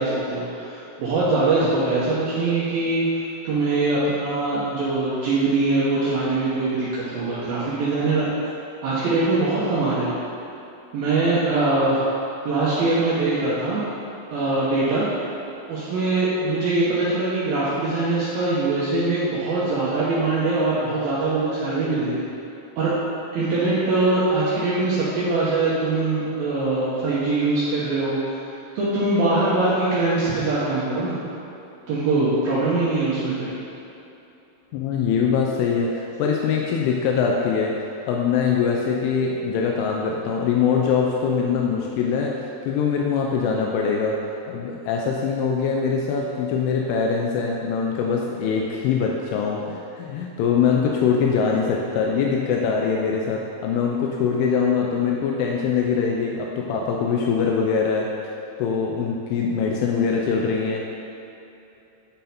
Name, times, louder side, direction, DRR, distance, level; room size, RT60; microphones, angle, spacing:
voice 1, 0.0-8.3 8.8-10.2 10.9-12.0 12.5-13.8 14.3-15.1 15.7-22.2 22.8-22.9 23.3-28.2 28.8-31.2 31.9-33.5 51.4-51.5, right 2 dB, 80° right, -8 dB, 2.1 m, -22 dB
voice 2, 34.7-37.7 38.1-42.3 42.7-44.2 44.5-58.1 58.6-61.0, left 6 dB, 85° left, -1 dB, 3.0 m, -23 dB
10.5 x 4.1 x 4.1 m, 2.9 s
omnidirectional pair, 5.5 m